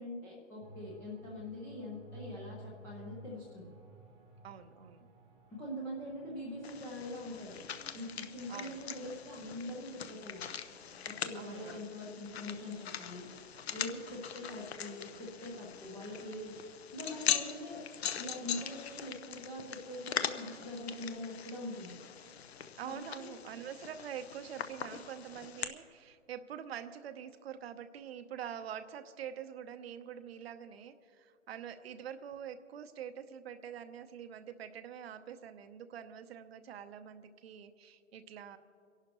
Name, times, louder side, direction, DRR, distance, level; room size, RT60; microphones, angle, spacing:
voice 1, 0.0-3.7 5.5-7.6 7.9-10.4 11.1-13.3 13.7-16.6 16.9-17.8 18.1-22.0 22.8-23.4, left 1 dB, 5° left, -6 dB, 0.5 m, -43 dB
sound 1, 0.6-16.6, right 2 dB, 15° right, 1.0 m, -57 dB
voice 2, 4.4-5.1 8.5-8.8 11.3-11.9 22.7-38.6, right 9 dB, 50° right, 10 dB, 0.8 m, -45 dB
sound 2, 6.6-25.6, left 9 dB, 50° left, 0.9 m, -41 dB
30.0 x 11.5 x 3.0 m, 2.5 s
hypercardioid pair, 145°, 40 cm